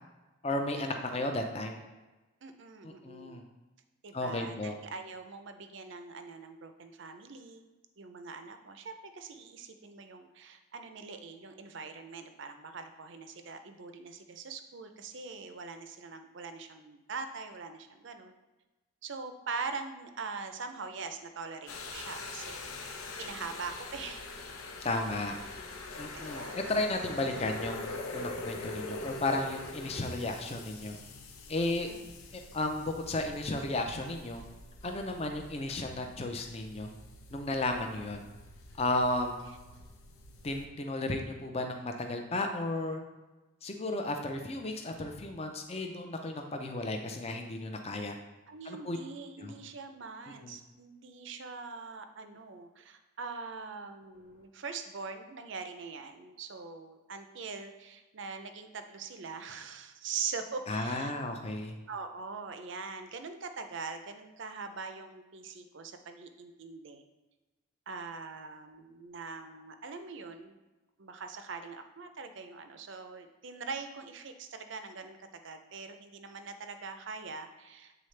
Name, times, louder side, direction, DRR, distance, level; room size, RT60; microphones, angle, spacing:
voice 1, 0.4-1.7 2.8-3.4 4.1-4.8 24.8-25.4 26.0-27.8 28.1-31.0 31.5-31.9 32.3-34.4 34.8-36.9 37.3-38.2 38.8-39.4 40.4-43.0 43.6-48.2 48.6-49.0 49.4-49.5 50.4-50.5 60.7-61.8, left 2 dB, 30° left, 4 dB, 0.5 m, -34 dB
voice 2, 2.4-3.4 4.0-7.6 8.0-18.3 19.0-22.6 23.2-24.3 26.1-26.6 31.9-32.0 48.5-61.1 61.9-67.0 67.9-70.5 71.0-78.1, right 4 dB, 55° right, 7 dB, 0.5 m, -42 dB
sound 1, 21.7-40.7, left 2 dB, 85° left, 0.7 m, -44 dB
8.0 x 3.8 x 3.2 m, 1.1 s
head